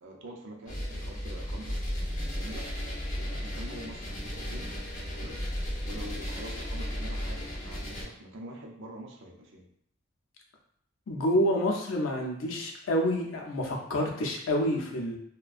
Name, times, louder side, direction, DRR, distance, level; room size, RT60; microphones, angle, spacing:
voice 1, 0.0-2.7 3.1-4.7 5.1-5.4 5.8-9.7, right 1 dB, 65° right, 0 dB, 0.5 m, -45 dB
sound 1, 0.7-8.0, equal, 40° left, 0.7 m, -35 dB
voice 2, 11.1-15.2, equal, 85° left, 0 dB, 0.5 m, -28 dB
2.4 x 2.2 x 2.3 m, 0.68 s
head